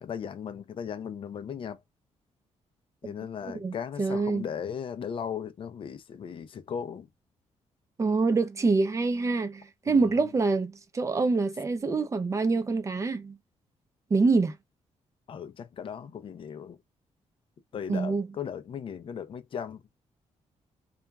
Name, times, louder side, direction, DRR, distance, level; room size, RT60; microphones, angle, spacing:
voice 1, 0.0-1.8 3.0-7.1 9.9-10.2 15.3-16.8 17.7-19.8, left 7 dB, 45° left, 0.4 m, -37 dB
voice 2, 3.4-4.4 8.0-13.4 14.1-14.5 17.9-18.3, right 3 dB, 25° right, 0.5 m, -26 dB
2.8 x 2.3 x 2.3 m
cardioid pair, 115°, 12 cm